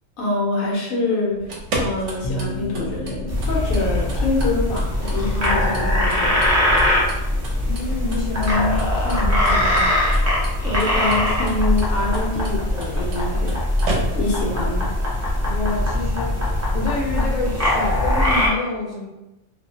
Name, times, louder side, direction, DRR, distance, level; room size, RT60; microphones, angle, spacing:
voice 1, 0.2-1.5 1.8-6.7 10.6-13.6 14.1-14.9, left 2 dB, 90° left, -4 dB, 1.2 m, -25 dB
sound 1, 1.3-14.5, right 2 dB, 70° right, 0.9 m, -34 dB
sound 2, 2.2-11.7, equal, 55° left, 0.5 m, -38 dB
sound 3, 3.3-18.5, left 1 dB, 20° right, 0.4 m, -21 dB
voice 2, 7.6-10.0 15.4-19.1, left 3 dB, 75° left, -3 dB, 1.1 m, -27 dB
2.8 x 2.1 x 2.7 m, 0.98 s
omnidirectional pair, 1.4 m